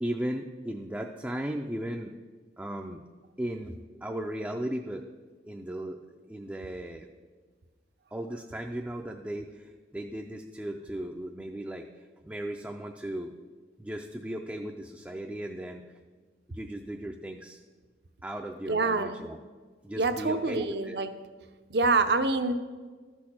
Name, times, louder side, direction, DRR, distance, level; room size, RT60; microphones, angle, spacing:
voice 1, 0.0-2.1 2.6-3.0 3.4-5.0 5.5-7.1 8.1-13.3 13.8-15.8 16.5-17.6 18.2-19.4 19.8-21.0, right 1 dB, 10° right, 2 dB, 0.4 m, -36 dB
voice 2, 18.7-19.2 20.0-21.1 21.7-22.5, right 3 dB, 65° right, 9 dB, 0.6 m, -26 dB
13.0 x 6.3 x 4.3 m, 1.4 s
head